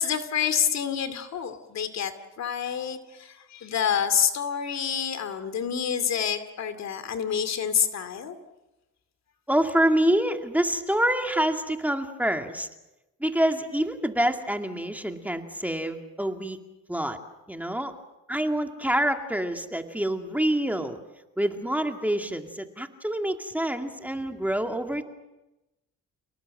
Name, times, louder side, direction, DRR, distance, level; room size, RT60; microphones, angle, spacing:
voice 1, 0.0-8.4, left 8 dB, 60° left, 11 dB, 2.5 m, -28 dB
voice 2, 9.5-12.7 13.2-16.6 16.9-17.2 17.5-17.9 18.3-21.0 21.4-25.0, right 1 dB, 5° right, 5 dB, 2.2 m, -26 dB
29.5 x 19.0 x 7.7 m, 0.98 s
cardioid pair, 90°, 30 cm